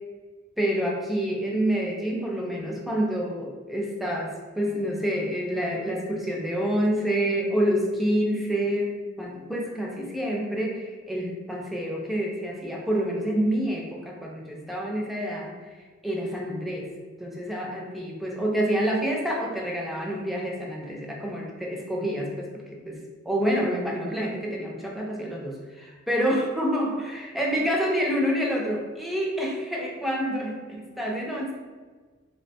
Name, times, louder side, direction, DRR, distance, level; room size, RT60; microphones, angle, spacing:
voice 1, 0.6-15.8 16.0-16.9 17.2-31.5, equal, ahead, -2 dB, 0.3 m, -28 dB
3.5 x 2.1 x 2.7 m, 1.4 s
head